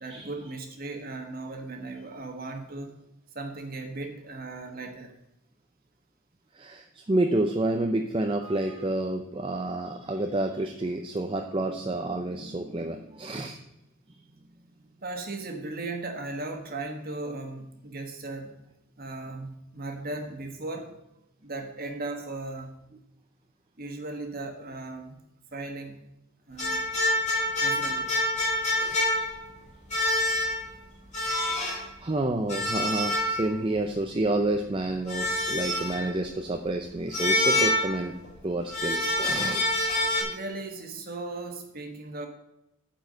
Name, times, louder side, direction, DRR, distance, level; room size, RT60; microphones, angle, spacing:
voice 1, 0.0-2.9 3.3-5.1 15.0-18.5 19.0-20.9 21.4-22.7 23.8-25.2 25.5-26.0 26.5-26.8 27.6-28.1 40.2-42.3, right 2 dB, 40° right, 4 dB, 1.4 m, -37 dB
voice 2, 6.5-13.6 28.8-29.1 31.2-31.6 32.0-38.1 38.4-39.7, right 2 dB, 25° right, 4 dB, 0.5 m, -29 dB
sound 1, 26.6-29.5 29.9-30.7 31.1-31.8 32.5-33.7 35.1-36.1 37.1-38.3 38.7-40.2, left 1 dB, 30° left, 2.9 m, -26 dB
9.2 x 4.7 x 7.4 m, 0.86 s
head